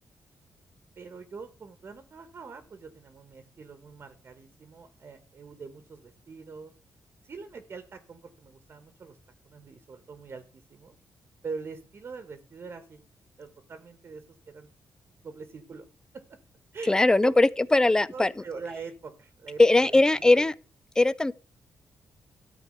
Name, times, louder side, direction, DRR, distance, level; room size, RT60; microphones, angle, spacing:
voice 1, 1.0-6.7 7.2-9.2 9.4-11.0 11.4-13.0 13.4-14.7 15.2-15.9 16.1-16.4 16.7-17.4 18.1-20.5, right 4 dB, 45° right, 1.3 m, -43 dB
voice 2, 16.9-18.3 19.6-20.5 21.0-21.3, left 2 dB, 10° left, 0.4 m, -20 dB
13.0 x 4.7 x 7.7 m
cardioid pair, 120°, 6 cm